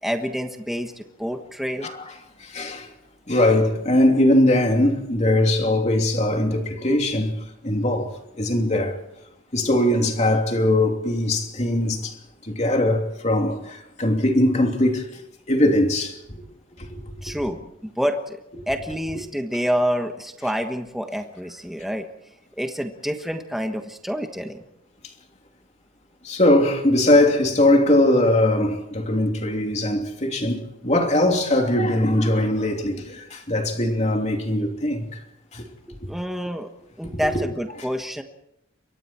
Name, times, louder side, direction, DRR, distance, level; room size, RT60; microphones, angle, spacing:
voice 1, 0.0-1.9 17.2-22.1 22.6-24.6 36.1-36.7 37.0-38.2, equal, ahead, 1.3 m, -28 dB
voice 2, 2.4-2.9 3.3-7.3 7.6-9.0 9.5-12.2 12.4-15.1 15.5-16.4 16.8-17.1 26.2-35.2 35.5-35.6 36.0-36.1 37.1-37.4, left 1 dB, 35° left, 3.0 m, -21 dB
28.0 x 24.0 x 4.5 m
head